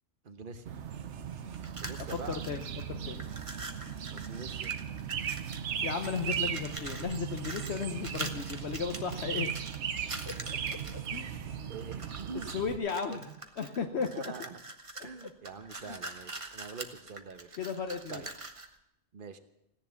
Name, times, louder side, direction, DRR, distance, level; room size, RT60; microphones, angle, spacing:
voice 1, 0.2-0.7 1.8-2.4 4.1-4.7 11.7-12.5 13.1-13.3 14.1-14.6 15.0-17.6 18.1-18.3 19.1-19.4, right 5 dB, 50° right, 9 dB, 1.2 m, -44 dB
sound 1, 0.7-12.8, right 8 dB, 80° right, 1.1 m, -37 dB
sound 2, 1.5-2.8 3.1-5.7 6.0-11.2 11.7-12.6 12.9-18.7, right 2 dB, 30° right, 1.1 m, -44 dB
voice 2, 2.3-3.2 5.8-9.7 10.3-11.4 12.5-13.3 13.6-14.3 15.0-15.1 15.9-16.0 17.6-18.2, left 6 dB, 70° left, 5 dB, 1.1 m, -35 dB
16.5 x 10.5 x 7.1 m, 0.84 s
omnidirectional pair, 1.2 m